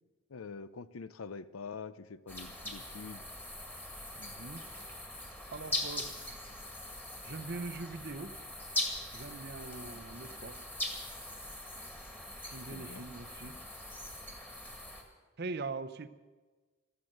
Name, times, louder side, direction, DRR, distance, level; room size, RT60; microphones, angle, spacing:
voice 1, 0.3-3.3 12.7-13.1, left 5 dB, 85° left, 16 dB, 0.6 m, -45 dB
sound 1, 2.3-15.0, left 1 dB, 10° left, 1.8 m, -41 dB
voice 2, 4.2-4.9 5.5-6.1 7.2-8.4 9.1-10.6 12.5-13.6 15.4-16.1, right 3 dB, 50° right, 12 dB, 0.7 m, -42 dB
15.0 x 13.0 x 6.6 m, 1.3 s
head